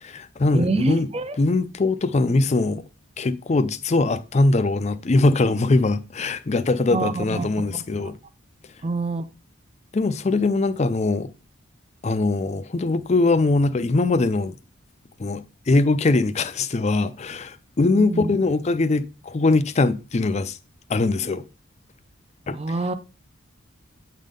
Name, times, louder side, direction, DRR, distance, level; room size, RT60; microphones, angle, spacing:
voice 1, 0.0-1.1 1.4-2.8 3.2-8.2 9.9-11.3 12.0-14.6 15.2-20.6 20.9-21.4 22.5-22.6, left 3 dB, 30° left, 0.4 m, -21 dB
voice 2, 0.5-1.4 2.3-2.4 6.9-7.8 8.8-9.3 17.9-18.3 22.5-22.9, right 2 dB, 30° right, 0.5 m, -26 dB
8.2 x 3.7 x 5.2 m
head